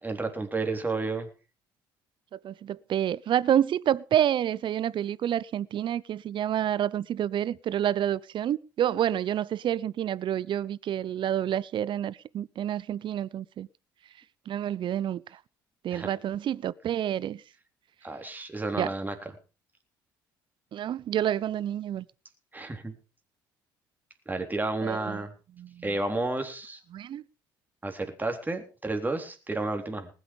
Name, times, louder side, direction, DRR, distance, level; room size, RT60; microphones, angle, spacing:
voice 1, 0.0-1.3 15.9-16.1 18.0-19.2 22.5-22.9 24.3-25.3 25.8-26.8 27.8-30.1, right 2 dB, 15° right, 3.6 m, -31 dB
voice 2, 2.4-13.7 14.5-15.2 15.8-17.4 18.8-18.9 20.7-22.1 24.8-25.2 25.6-25.9 26.9-27.2, right 10 dB, 50° right, 0.7 m, -28 dB
19.5 x 8.3 x 5.3 m
hypercardioid pair, 60°, 10 cm